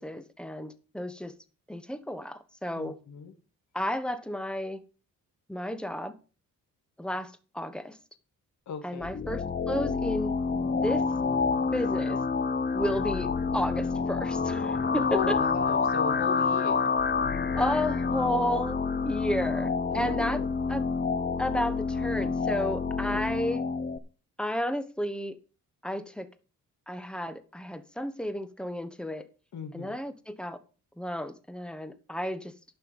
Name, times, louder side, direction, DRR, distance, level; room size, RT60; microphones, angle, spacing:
voice 1, 0.0-1.3 1.7-3.0 3.7-4.8 5.5-6.1 7.0-8.0 8.8-10.3 10.6-11.0 11.7-12.2 12.7-15.4 17.6-20.4 20.7-20.8 21.4-23.7 24.4-25.4 25.8-26.3 26.9-29.3 29.7-30.6 31.0-32.5, equal, 5° left, 1.3 m, -32 dB
voice 2, 2.8-3.3 8.7-9.1 15.1-17.0 19.9-20.5 23.1-23.5 29.5-30.0, left 7 dB, 65° left, 2.5 m, -37 dB
sound 1, 9.0-24.0, left 4 dB, 35° left, 1.1 m, -28 dB
11.0 x 5.8 x 7.2 m
cardioid pair, 100°, 32 cm